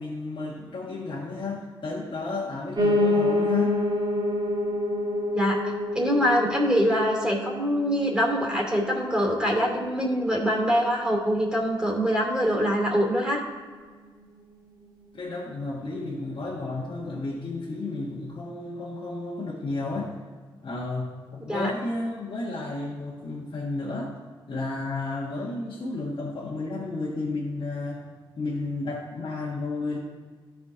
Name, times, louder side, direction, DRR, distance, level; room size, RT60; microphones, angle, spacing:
voice 1, 0.0-3.8 15.1-20.2 20.6-24.1 24.5-30.0, left 3 dB, 65° left, -5 dB, 1.5 m, -32 dB
Piano, 2.8-11.9 12.3-13.4 13.7-13.8 14.0-14.1 14.4-14.5 15.0-15.1, left 1 dB, 50° right, 1.8 m, -29 dB
voice 2, 5.3-13.4 21.5-21.7, equal, 10° right, -2 dB, 2.7 m, -24 dB
13.5 x 5.2 x 3.8 m, 1.5 s
cardioid pair, 60°, 9 cm